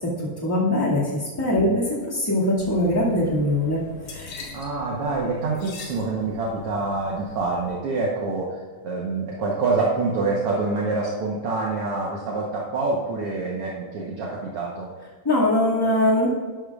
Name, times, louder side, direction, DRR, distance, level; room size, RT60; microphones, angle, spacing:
voice 1, 0.0-3.8 4.1-4.5 15.2-16.3, left 1 dB, 10° left, -6 dB, 1.2 m, -22 dB
sound 1, 2.6-7.7, left 2 dB, 65° left, 2.5 m, -41 dB
voice 2, 4.5-8.5 8.8-14.9, right 3 dB, 70° right, -4 dB, 1.4 m, -26 dB
12.0 x 11.0 x 2.4 m, 1.5 s
omnidirectional pair, 4.1 m